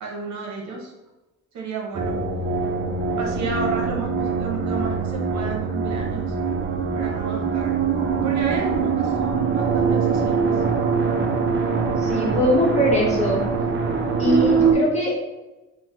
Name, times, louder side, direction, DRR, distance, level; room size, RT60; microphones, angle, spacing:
voice 1, 0.0-0.9 1.5-2.2 3.2-6.3 6.9-7.8 8.2-10.5, right 4 dB, 65° right, 0 dB, 0.8 m, -31 dB
sound 1, 1.9-14.7, right 5 dB, 40° right, 0.5 m, -23 dB
voice 2, 12.0-13.5 14.2-15.3, equal, 20° left, -4 dB, 1.0 m, -21 dB
3.1 x 2.1 x 2.9 m, 1.1 s
cardioid pair, 90°, 30 cm